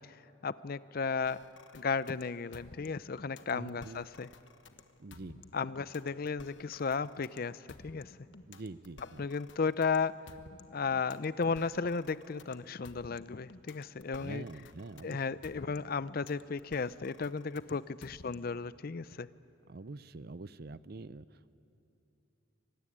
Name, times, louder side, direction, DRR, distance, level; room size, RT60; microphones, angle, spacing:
voice 1, 0.4-1.5 1.7-4.3 5.5-8.1 9.2-10.2 10.7-14.4 15.0-19.3, left 5 dB, 50° left, 17 dB, 0.5 m, -34 dB
sound 1, 1.2-18.6, left 3 dB, 65° left, 1.2 m, -55 dB
voice 2, 3.5-4.1 5.0-5.4 8.5-9.2 14.2-15.2 19.7-21.5, right 3 dB, 50° right, 16 dB, 0.6 m, -45 dB
25.5 x 21.5 x 10.0 m, 2.8 s
head